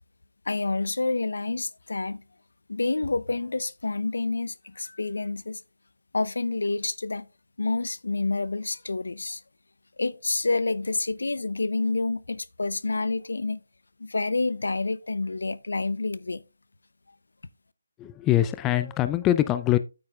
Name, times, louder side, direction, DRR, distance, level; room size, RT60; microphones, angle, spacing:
voice 1, 0.5-2.2 2.7-5.6 6.1-7.3 7.6-9.4 10.0-13.6 14.0-16.4, left 3 dB, 80° left, 0.6 m, -28 dB
voice 2, 18.0-19.8, left 13 dB, 15° left, 0.4 m, -23 dB
8.9 x 8.7 x 2.3 m
figure-of-eight pair, 160°, 0 cm